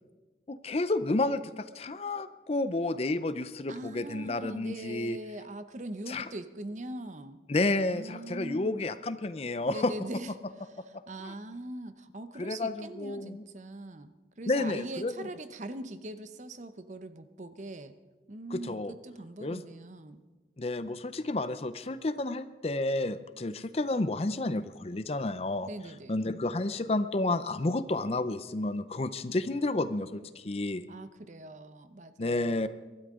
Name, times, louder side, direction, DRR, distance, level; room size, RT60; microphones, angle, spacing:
voice 1, 0.5-5.2 6.1-6.3 7.5-9.9 11.2-11.3 12.4-13.4 14.5-15.1 18.5-18.9 19.4-19.6 20.6-25.7 26.1-30.8 32.2-32.7, left 2 dB, 35° left, 13 dB, 0.5 m, -31 dB
voice 2, 3.7-7.4 7.9-8.9 9.7-10.3 10.6-17.9 18.3-20.2 25.7-26.2 30.9-32.7, right 1 dB, 40° right, 11 dB, 0.7 m, -42 dB
23.5 x 13.0 x 3.7 m, 1.3 s
head